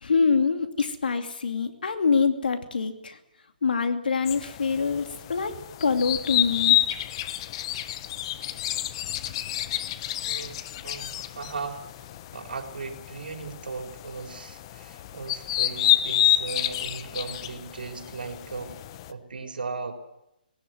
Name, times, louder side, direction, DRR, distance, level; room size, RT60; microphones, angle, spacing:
voice 1, 0.0-3.2 3.6-5.5 5.8-6.8, left 5 dB, 75° left, 7 dB, 2.7 m, -25 dB
sound 1, 4.3-19.1, left 13 dB, 35° left, 0.9 m, -29 dB
voice 2, 10.2-18.8 19.1-19.9, right 4 dB, 75° right, 4 dB, 4.2 m, -37 dB
19.0 x 18.0 x 9.6 m, 0.87 s
hypercardioid pair, 150°, 5 cm